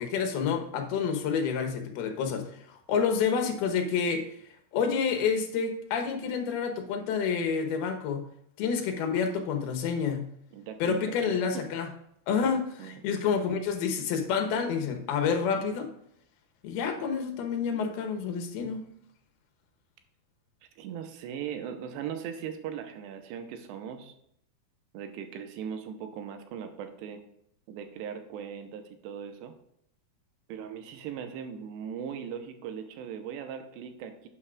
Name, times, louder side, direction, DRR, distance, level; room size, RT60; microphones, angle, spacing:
voice 1, 0.0-4.3 4.7-8.2 8.6-10.2 10.8-11.9 12.3-15.9 16.6-18.9, left 6 dB, 75° left, 6 dB, 2.9 m, -29 dB
voice 2, 10.5-11.7 12.8-13.0 20.8-24.1 24.9-27.2 27.7-29.5 30.5-34.3, right 8 dB, 90° right, 7 dB, 3.0 m, -39 dB
11.0 x 8.9 x 2.4 m, 0.72 s
omnidirectional pair, 4.8 m